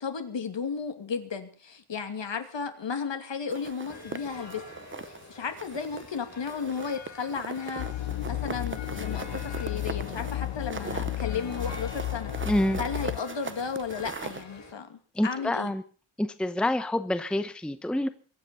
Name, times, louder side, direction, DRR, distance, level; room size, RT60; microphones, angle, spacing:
voice 1, 0.0-4.6 5.0-12.5 12.8-15.7, left 6 dB, 60° left, 7 dB, 2.7 m, -34 dB
sound 1, 3.5-5.2 5.6-6.2 6.5-14.4, right 4 dB, 25° right, 0.8 m, -40 dB
sound 2, 3.9-14.7, left 3 dB, 35° left, 5.8 m, -47 dB
sound 3, 7.8-13.2, left 14 dB, 80° left, 0.7 m, -33 dB
voice 2, 12.5-12.8 15.1-15.8 16.2-18.1, left 1 dB, ahead, 11 dB, 0.8 m, -27 dB
23.0 x 9.1 x 6.9 m, 0.41 s
wide cardioid pair, 150°, 49 cm